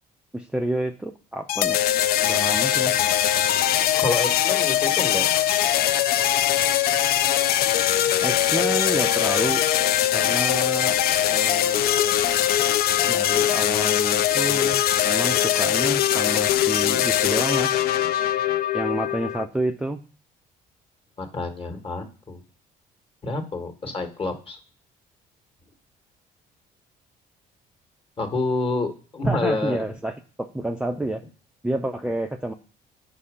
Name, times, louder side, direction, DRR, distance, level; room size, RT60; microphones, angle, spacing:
voice 1, 0.3-1.8 2.2-3.0 8.2-9.6 10.1-11.0 11.3-12.1 13.1-17.8 18.7-20.0 29.2-30.1 30.4-31.2 31.6-32.5, right 1 dB, 5° right, 4 dB, 0.4 m, -29 dB
sound 1, 1.5-19.4, left 12 dB, 65° left, 0.4 m, -21 dB
voice 2, 4.0-5.3 21.2-22.4 23.2-24.6 28.2-29.8, left 2 dB, 35° left, 5 dB, 1.4 m, -28 dB
5.2 x 4.3 x 4.8 m, 0.37 s
cardioid pair, 110°, 17 cm